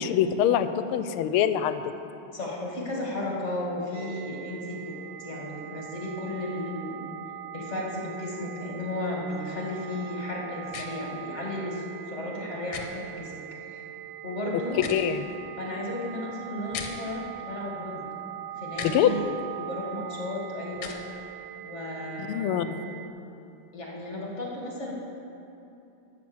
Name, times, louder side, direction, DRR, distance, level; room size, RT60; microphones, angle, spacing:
voice 1, 0.0-1.8 14.9-15.3 18.8-19.1 22.2-22.7, left 10 dB, 90° left, 11 dB, 1.5 m, -24 dB
voice 2, 2.3-4.9 5.2-7.0 7.5-13.3 13.6-13.8 14.2-14.8 15.6-18.1 18.6-19.3 19.6-21.0 21.6-22.6 23.7-24.9, left 1 dB, 35° left, -3 dB, 2.2 m, -34 dB
sound 1, 3.9-23.1, right 13 dB, 75° right, 1.4 m, -41 dB
sound 2, 10.7-10.9 12.7-12.9 14.7-15.1 16.7-16.9 18.7-19.0 20.7-21.0, left 7 dB, 70° left, 1.6 m, -36 dB
12.5 x 6.3 x 7.8 m, 2.8 s
omnidirectional pair, 2.3 m